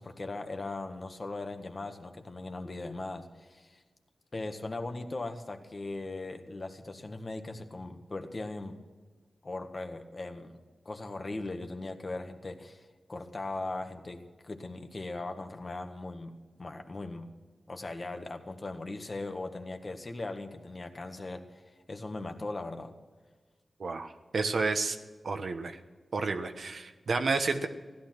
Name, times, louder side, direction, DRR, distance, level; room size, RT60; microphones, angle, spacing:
voice 1, 0.0-3.8 4.3-8.8 9.4-10.6 10.9-16.3 16.6-17.3 17.7-21.5 21.9-22.9, left 2 dB, 45° left, 5 dB, 1.7 m, -39 dB
voice 2, 23.8-25.0 25.2-25.8 26.1-27.7, right 3 dB, 70° right, 7 dB, 1.2 m, -30 dB
15.5 x 11.5 x 6.0 m, 1.4 s
cardioid pair, 60°, 0 cm